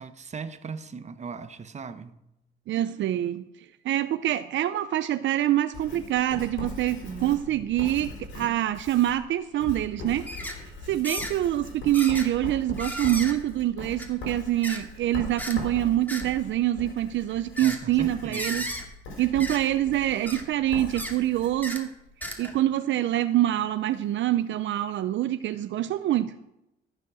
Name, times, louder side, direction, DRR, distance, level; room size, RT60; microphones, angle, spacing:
voice 1, 0.0-2.2 7.1-7.7 17.6-18.8, right 5 dB, 35° right, 1.0 m, -38 dB
voice 2, 2.7-3.5 3.8-18.7 19.2-21.9 22.4-26.3, right 13 dB, 70° right, 0.5 m, -25 dB
Writing, 5.7-22.4, left 3 dB, 80° left, 5.0 m, -41 dB
sound 1, 10.3-10.6 11.0-11.3 11.9-12.3 12.8-13.3 14.0-14.1 14.6-14.8 15.4-15.6 16.1-16.2 17.6-17.8 18.3-18.8 19.4-19.6 20.2-20.4 20.9-21.1 21.6-21.8 22.2-22.6 23.2-23.3, equal, 10° left, 2.4 m, -34 dB
14.0 x 7.5 x 6.3 m
cardioid pair, 90°, 20 cm